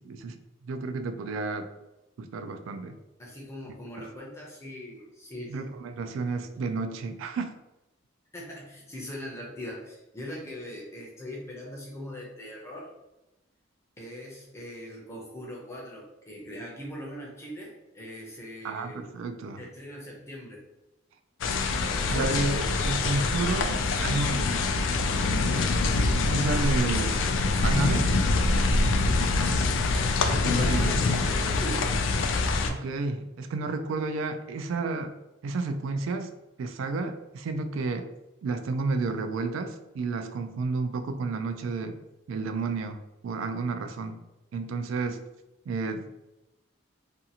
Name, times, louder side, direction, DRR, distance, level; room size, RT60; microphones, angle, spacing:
voice 1, 0.0-1.7 2.2-3.0 4.0-4.1 5.5-7.5 18.6-19.7 22.1-24.5 25.7-25.8 26.3-27.3 27.6-28.1 30.3-30.9 32.7-35.1 35.4-36.3 36.6-38.1 38.4-42.0 42.3-44.2 44.5-45.2 45.7-46.1, right 3 dB, 80° right, 7 dB, 0.3 m, -31 dB
voice 2, 3.2-5.7 8.3-12.9 14.0-19.1 19.6-20.6 30.3-31.9, equal, 15° left, -3 dB, 0.6 m, -41 dB
sound 1, 21.4-32.7, left 3 dB, 75° left, 0.3 m, -25 dB
2.6 x 2.4 x 2.7 m, 1.0 s
head